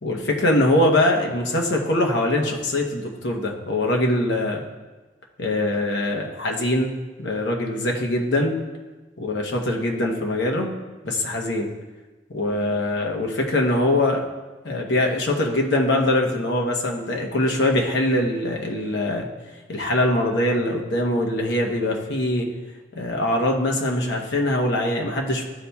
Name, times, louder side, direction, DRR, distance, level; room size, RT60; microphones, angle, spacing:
voice 1, 0.0-4.6 5.4-6.9 7.2-8.6 9.2-10.7 11.0-11.7 12.3-14.2 14.6-19.3 19.7-22.5 23.0-25.4, left 1 dB, 70° left, 1 dB, 0.9 m, -22 dB
11.0 x 4.1 x 2.3 m, 1.2 s
head